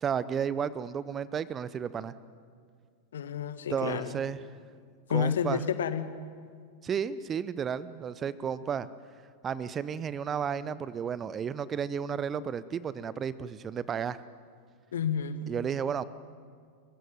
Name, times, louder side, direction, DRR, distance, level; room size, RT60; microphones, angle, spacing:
voice 1, 0.0-2.1 3.7-4.4 5.1-5.6 6.8-8.9 9.4-14.2 15.5-16.0, right 7 dB, 25° right, 17 dB, 0.8 m, -32 dB
voice 2, 3.1-4.1 5.1-6.1 14.9-15.4, left 7 dB, 65° left, 10 dB, 1.8 m, -30 dB
30.0 x 16.0 x 9.2 m, 2.1 s
figure-of-eight pair, 90°, 0 cm